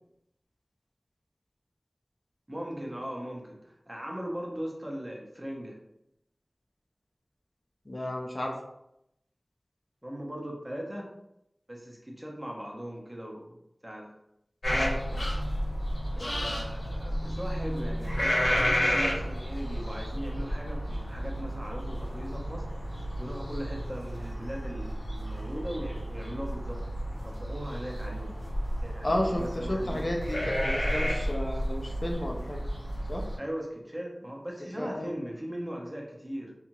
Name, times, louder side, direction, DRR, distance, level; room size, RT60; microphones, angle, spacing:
voice 1, 2.5-5.8 10.0-11.1 11.7-14.1 14.7-14.9 16.2-22.9 23.2-26.8 27.1-28.3 28.8-30.1 33.4-36.5, equal, 25° right, -1 dB, 0.7 m, -39 dB
voice 2, 7.9-8.5 14.7-15.0 29.0-32.6 33.1-33.2 34.8-35.1, left 1 dB, 45° left, 0 dB, 0.4 m, -32 dB
sound 1, 14.6-33.4, equal, 90° left, 0.8 m, -32 dB
2.7 x 2.4 x 2.9 m, 0.81 s
wide cardioid pair, 55°, 0 cm